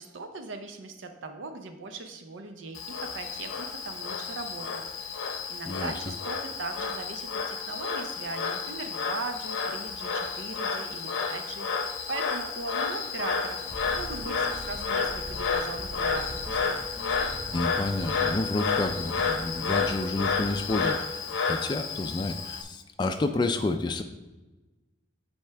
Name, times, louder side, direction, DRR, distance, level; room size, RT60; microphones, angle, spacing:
voice 1, 0.0-4.8 5.5-13.6 14.0-16.9, right 3 dB, 85° right, 7 dB, 0.6 m, -39 dB
Frog, 2.8-22.6, left 5 dB, 90° left, 0.7 m, -31 dB
sound 1, 13.6-20.7, equal, 10° right, 2.1 m, -43 dB
voice 2, 17.5-24.0, left 2 dB, 25° left, 5 dB, 0.3 m, -30 dB
9.2 x 4.3 x 3.3 m, 1.1 s
head